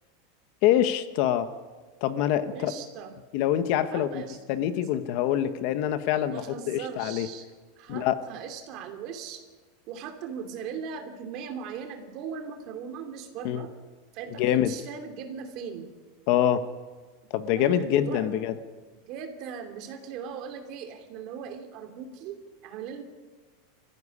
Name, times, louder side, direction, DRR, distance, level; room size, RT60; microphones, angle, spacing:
voice 1, 0.6-1.5 2.0-2.7 3.3-4.2 4.5-7.3 7.9-8.2 13.4-13.6 14.4-14.7 16.3-16.6 17.3-18.5, left 11 dB, 40° left, 11 dB, 1.1 m, -25 dB
voice 2, 2.5-3.1 3.9-4.4 4.7-5.0 6.3-7.5 7.8-9.4 9.9-13.7 14.1-15.9 17.5-18.4 19.1-23.0, right 7 dB, 35° right, 5 dB, 2.8 m, -39 dB
25.5 x 15.5 x 9.8 m, 1.4 s
supercardioid pair, 175°, 0 cm